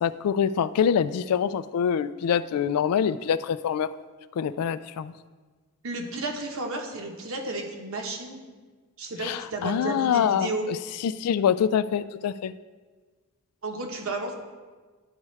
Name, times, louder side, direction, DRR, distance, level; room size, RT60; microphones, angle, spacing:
voice 1, 0.0-3.9 4.4-5.1 9.2-10.8 11.0-12.5, left 8 dB, 90° left, 16 dB, 0.3 m, -25 dB
voice 2, 5.8-8.4 9.0-10.7 13.6-14.3, right 2 dB, 65° right, 2 dB, 1.0 m, -32 dB
12.0 x 4.8 x 3.2 m, 1.4 s
head